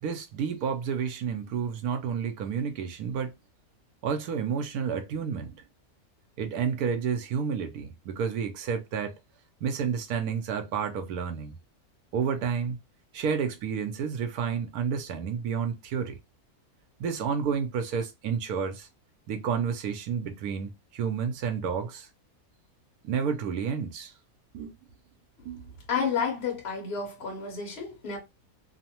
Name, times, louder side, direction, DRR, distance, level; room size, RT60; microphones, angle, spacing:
voice 1, 0.0-3.3 4.0-5.6 6.4-9.2 9.6-11.5 12.1-12.8 13.1-16.2 17.0-18.9 19.3-22.1 23.0-24.1 24.5-24.7 25.4-25.7, right 6 dB, 80° right, 1.1 m, -30 dB
voice 2, 25.9-28.2, left 6 dB, 45° left, 1.3 m, -30 dB
3.0 x 2.1 x 2.8 m
omnidirectional pair, 1.6 m